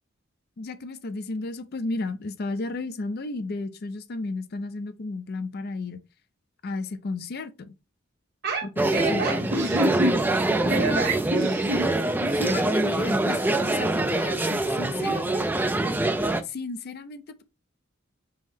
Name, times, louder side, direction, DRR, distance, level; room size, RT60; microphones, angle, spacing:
voice 1, 0.6-6.0 6.6-7.7 8.8-9.5 10.5-10.6 12.4-15.5 16.4-17.4, left 3 dB, 50° left, 0.5 m, -33 dB
voice 2, 8.4-11.9 12.2-12.4, right 1 dB, 50° right, 1.3 m, -28 dB
sound 1, 8.8-16.4, right 2 dB, 10° right, 0.3 m, -24 dB
5.5 x 2.1 x 3.2 m
head